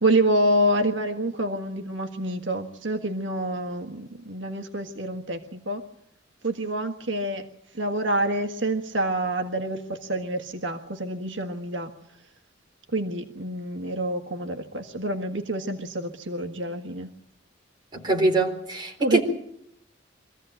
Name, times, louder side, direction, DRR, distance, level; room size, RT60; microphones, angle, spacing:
voice 1, 0.0-5.8 6.4-7.4 7.8-11.9 12.9-17.1 19.0-19.2, right 1 dB, 75° right, 5 dB, 1.6 m, -27 dB
voice 2, 17.9-19.2, right 2 dB, 25° right, 1 dB, 4.0 m, -23 dB
25.0 x 15.0 x 9.1 m, 0.74 s
head